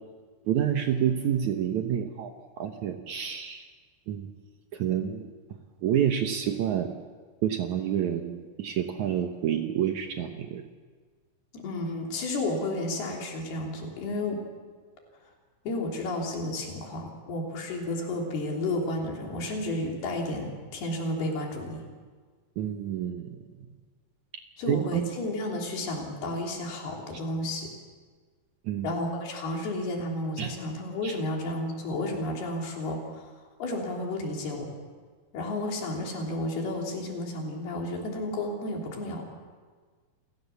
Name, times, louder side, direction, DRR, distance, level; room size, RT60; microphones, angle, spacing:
voice 1, 0.5-2.3 2.6-3.7 4.1-4.3 4.7-5.3 5.8-6.9 7.4-10.6 22.6-23.4 24.7-25.0 28.7-28.9 30.4-30.6 31.0-31.2, right 9 dB, 70° right, 6 dB, 2.0 m, -28 dB
voice 2, 11.5-14.4 15.7-21.8 24.6-27.7 28.8-33.3 33.6-34.7 35.3-39.2, left 2 dB, 85° left, 0 dB, 5.2 m, -32 dB
28.0 x 16.5 x 7.1 m, 1.5 s
omnidirectional pair, 4.4 m